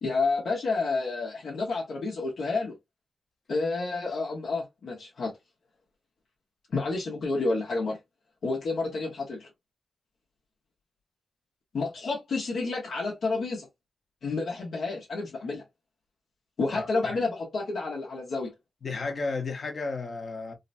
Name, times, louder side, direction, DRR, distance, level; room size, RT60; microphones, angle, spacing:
voice 1, 0.0-2.8 3.5-5.3 6.7-8.0 8.4-9.5 11.7-13.7 14.2-15.6 16.6-18.5, left 3 dB, 75° left, 1.1 m, -30 dB
voice 2, 16.7-17.2 18.8-20.5, left 3 dB, 50° left, 0.9 m, -33 dB
3.8 x 2.1 x 2.6 m
cardioid pair, 90°, 0 cm